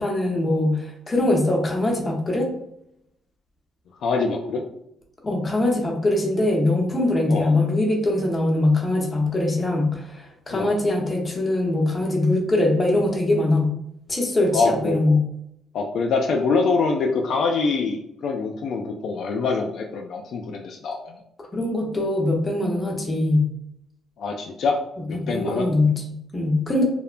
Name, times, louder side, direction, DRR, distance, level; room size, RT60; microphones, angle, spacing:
voice 1, 0.0-2.5 5.2-13.7 14.1-15.2 21.4-23.5 25.1-26.8, left 2 dB, 25° left, 0 dB, 0.7 m, -22 dB
voice 2, 4.0-4.6 7.3-7.5 10.5-10.7 14.5-15.0 15.7-21.2 24.2-24.8 25.1-25.7, left 4 dB, 70° left, 1 dB, 0.3 m, -24 dB
2.8 x 2.1 x 2.4 m, 0.77 s
cardioid pair, 90°, 0 cm